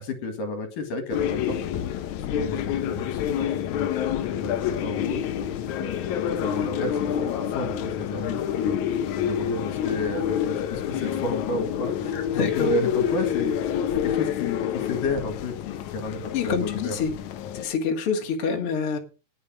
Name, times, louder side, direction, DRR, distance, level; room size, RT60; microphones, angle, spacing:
voice 1, 0.0-1.8 2.3-4.0 4.3-5.5 5.8-8.8 9.1-13.6 14.0-17.0, left 2 dB, 60° left, 7 dB, 3.3 m, -32 dB
sound 1, 1.1-17.7, left 9 dB, 80° left, 1.7 m, -28 dB
voice 2, 12.1-12.7 16.2-17.1 17.5-19.0, left 6 dB, 45° left, 2 dB, 2.3 m, -27 dB
19.0 x 6.9 x 5.1 m, 0.33 s
omnidirectional pair, 4.7 m